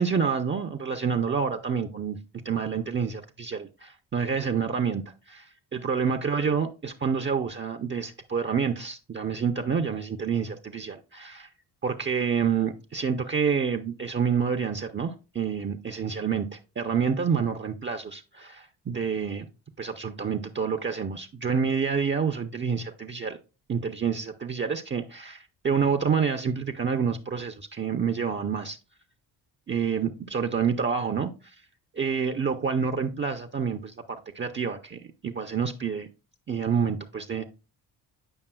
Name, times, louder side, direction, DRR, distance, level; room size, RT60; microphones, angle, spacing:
voice 1, 0.0-2.2 2.4-11.5 11.8-19.5 19.8-23.4 23.7-28.8 29.7-31.6 32.0-36.1 36.5-37.4, right 6 dB, 25° right, 0.6 m, -28 dB
8.8 x 5.3 x 2.3 m
supercardioid pair, 60°, 44 cm